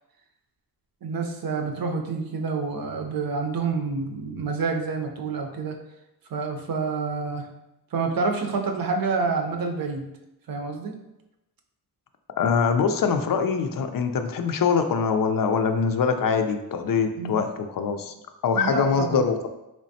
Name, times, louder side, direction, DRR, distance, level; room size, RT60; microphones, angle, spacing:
voice 1, 1.0-5.8 6.3-7.5 7.9-10.1 10.5-11.0 17.2-17.5 18.5-19.3, right 4 dB, 60° right, 3 dB, 0.6 m, -28 dB
voice 2, 12.4-17.5 17.7-18.1 18.4-19.5, left 5 dB, 60° left, 7 dB, 0.5 m, -23 dB
3.4 x 3.1 x 2.7 m, 0.92 s
cardioid pair, 55°, 40 cm